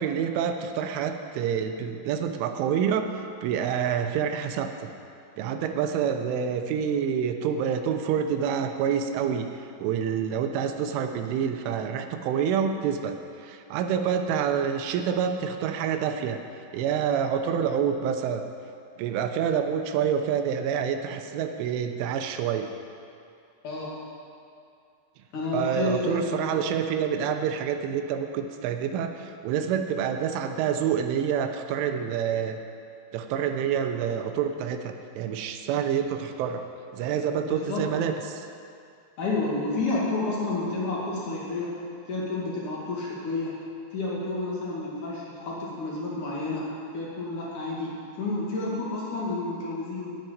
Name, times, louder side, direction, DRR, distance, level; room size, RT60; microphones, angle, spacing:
voice 1, 0.0-3.1 3.4-4.9 5.4-16.4 16.7-18.4 19.0-22.7 25.5-32.6 33.1-36.6 36.9-38.4, right 8 dB, 80° right, 6 dB, 3.1 m, -27 dB
voice 2, 25.3-26.6 37.4-37.8 39.2-41.8 42.1-43.6 43.9-46.7 46.9-50.2, left 2 dB, 50° left, -5 dB, 2.8 m, -30 dB
10.0 x 8.9 x 9.4 m, 2.5 s
omnidirectional pair, 5.8 m